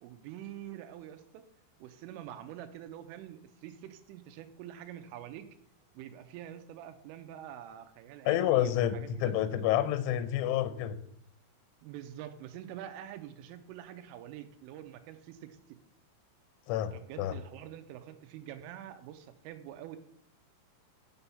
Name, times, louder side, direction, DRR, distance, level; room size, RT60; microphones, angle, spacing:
voice 1, 0.0-1.4 1.8-5.5 5.9-9.4 11.8-15.8 16.9-20.0, right 11 dB, 85° right, 9 dB, 3.2 m, -46 dB
voice 2, 8.3-11.0 16.7-17.3, left 12 dB, 80° left, 13 dB, 2.9 m, -29 dB
8.0 x 7.0 x 6.9 m, 0.70 s
omnidirectional pair, 5.9 m